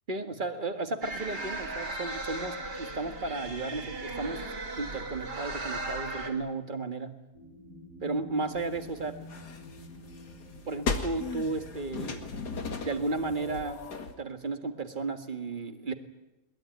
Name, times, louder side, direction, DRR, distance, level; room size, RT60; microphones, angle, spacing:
voice 1, 0.1-4.4 4.8-7.2 8.0-9.2 10.6-12.2 12.8-13.8 14.2-15.9, right 3 dB, 30° right, 7 dB, 1.8 m, -34 dB
sound 1, 1.0-6.3, right 2 dB, 85° right, 3.7 m, -37 dB
sound 2, 7.3-13.6, left 1 dB, 50° right, 3.3 m, -49 dB
sound 3, 8.5-14.1, left 4 dB, 80° left, 2.6 m, -37 dB
22.0 x 21.0 x 9.3 m, 0.99 s
omnidirectional pair, 1.8 m